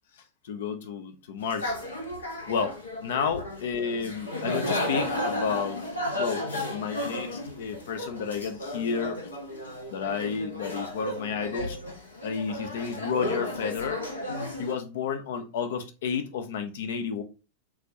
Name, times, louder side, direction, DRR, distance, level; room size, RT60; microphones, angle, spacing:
voice 1, 0.4-1.8 2.5-5.8 6.2-9.3 9.9-11.8 12.2-14.0 14.6-17.2, left 6 dB, 55° left, 0.6 m, -31 dB
sound 1, 1.4-14.7, left 1 dB, 75° left, 1.0 m, -33 dB
6.2 x 2.6 x 2.7 m
figure-of-eight pair, 90°, 0 cm